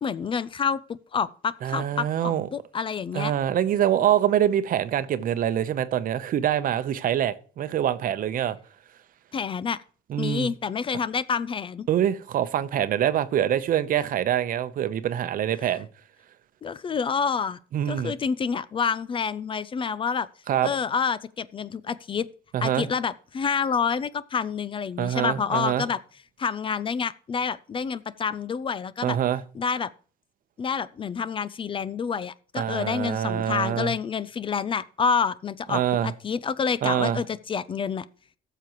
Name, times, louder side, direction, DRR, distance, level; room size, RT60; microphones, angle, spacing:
voice 1, 0.0-3.3 9.3-9.8 10.2-11.9 16.6-17.6 17.9-20.3 20.6-22.3 22.6-26.0 26.4-29.2 29.5-29.9 30.6-38.0, left 6 dB, 30° left, 0.4 m, -28 dB
voice 2, 1.6-2.5 3.1-8.6 10.1-10.5 11.9-15.9 17.7-18.1 20.5-20.7 22.5-22.9 25.0-25.9 29.0-29.4 32.6-33.9 35.7-36.1 36.8-37.2, right 10 dB, 55° right, 0.8 m, -25 dB
14.5 x 6.8 x 3.0 m
cardioid pair, 110°, 17 cm